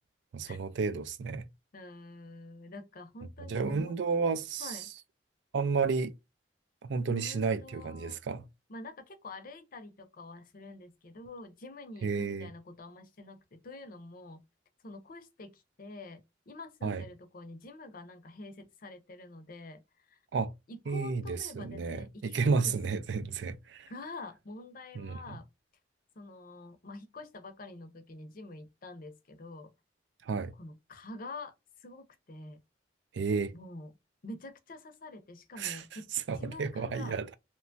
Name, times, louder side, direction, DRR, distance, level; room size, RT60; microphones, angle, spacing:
voice 1, 0.3-1.5 3.5-4.8 5.5-6.1 6.8-8.5 12.0-12.5 16.8-17.0 20.3-20.5 20.9-23.9 24.9-25.4 30.2-30.5 33.1-33.5 35.6-35.8 36.1-37.3, right 4 dB, 75° right, 0.4 m, -32 dB
voice 2, 1.7-3.9 4.6-4.9 7.1-8.2 8.7-14.4 14.8-20.2 20.7-22.8 23.9-25.5 26.2-29.7 30.5-32.6 33.5-33.9 34.2-36.1 36.4-37.2, left 2 dB, 50° left, 0.6 m, -47 dB
2.9 x 2.2 x 2.5 m
head